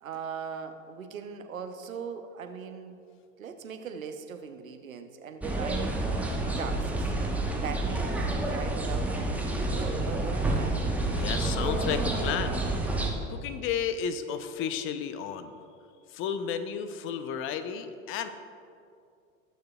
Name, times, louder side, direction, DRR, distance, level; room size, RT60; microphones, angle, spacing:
voice 1, 0.0-3.0 3.4-6.0 6.6-7.1 7.6-10.9, right 6 dB, 80° right, 7 dB, 0.8 m, -40 dB
sound 1, 5.4-13.1, right 2 dB, 5° right, 1.0 m, -29 dB
voice 2, 11.1-12.6 13.3-15.6 16.1-18.3, left 8 dB, 30° left, 10 dB, 0.6 m, -33 dB
19.5 x 6.6 x 2.3 m, 2.4 s
figure-of-eight pair, 85°, 41 cm